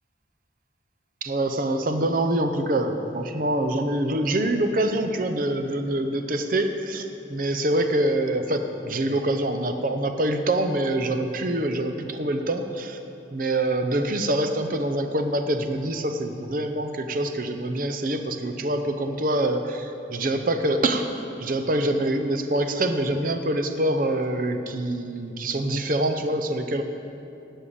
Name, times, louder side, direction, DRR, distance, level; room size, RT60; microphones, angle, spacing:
voice 1, 1.2-13.0 13.3-26.8, right 1 dB, 45° right, 6 dB, 0.7 m, -25 dB
12.5 x 5.5 x 8.5 m, 2.8 s
head